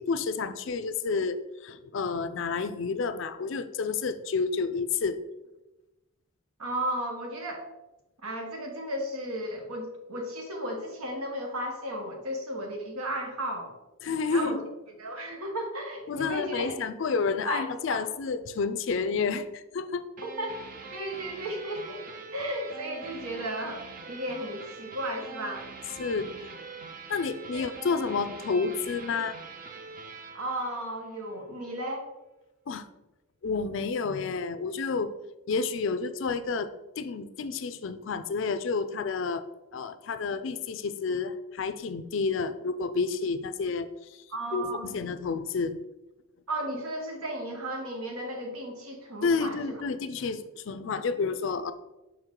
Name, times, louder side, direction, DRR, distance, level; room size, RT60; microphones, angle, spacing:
voice 1, 0.0-5.2 14.0-14.6 16.1-20.0 26.0-26.3 27.1-29.4 32.7-32.8 33.4-35.1 35.5-39.4 39.7-44.2 44.5-45.8 49.2-51.7, left 4 dB, 60° left, 11 dB, 0.4 m, -30 dB
voice 2, 6.6-7.6 8.2-13.7 14.3-14.6 15.0-16.7 17.5-18.0 20.2-20.6 20.9-22.0 22.3-23.8 24.1-25.7 27.5-27.7 30.3-32.1 44.3-44.9 46.5-49.8, right 1 dB, 85° right, 2 dB, 1.3 m, -34 dB
sound 1, 20.2-31.4, right 4 dB, 40° right, 0.5 m, -44 dB
5.9 x 4.5 x 3.7 m, 1.0 s
head